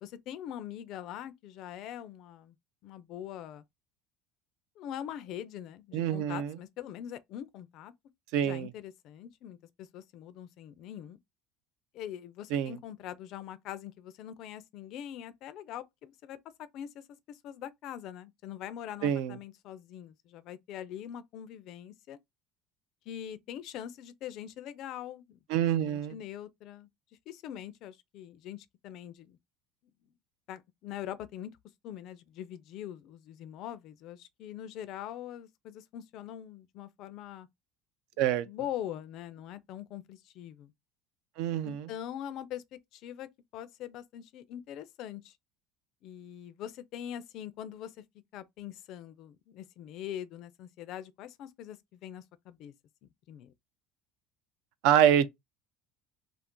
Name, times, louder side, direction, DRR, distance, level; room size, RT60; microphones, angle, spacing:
voice 1, 0.0-2.5 2.8-3.6 4.8-7.9 8.4-11.2 11.9-16.4 16.7-22.2 23.1-25.4 25.8-26.9 27.3-29.4 30.5-31.5 31.8-37.5 38.5-40.7 41.6-45.3 46.0-47.9 48.3-52.7 53.3-53.5, left 11 dB, 50° left, 0.4 m, -43 dB
voice 2, 5.9-6.6 8.3-8.7 12.5-12.8 19.0-19.4 25.5-26.2 38.2-38.5 41.4-41.9 54.8-55.3, right 10 dB, 65° right, 0.4 m, -26 dB
2.5 x 2.4 x 3.6 m
cardioid pair, 160°, 0 cm